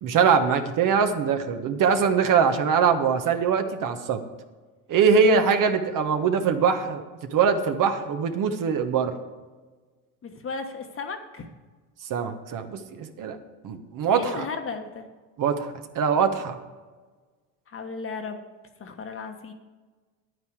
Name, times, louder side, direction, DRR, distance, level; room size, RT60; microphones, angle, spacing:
voice 1, 0.0-4.2 4.9-7.0 7.3-9.1 12.1-13.4 13.6-14.5 15.4-16.6, right 6 dB, 45° right, 7 dB, 1.2 m, -22 dB
voice 2, 10.2-11.5 14.1-15.1 17.7-18.4 18.8-19.5, left 4 dB, 30° left, 5 dB, 1.3 m, -35 dB
10.5 x 9.5 x 4.8 m, 1.3 s
supercardioid pair, 110°, 45 cm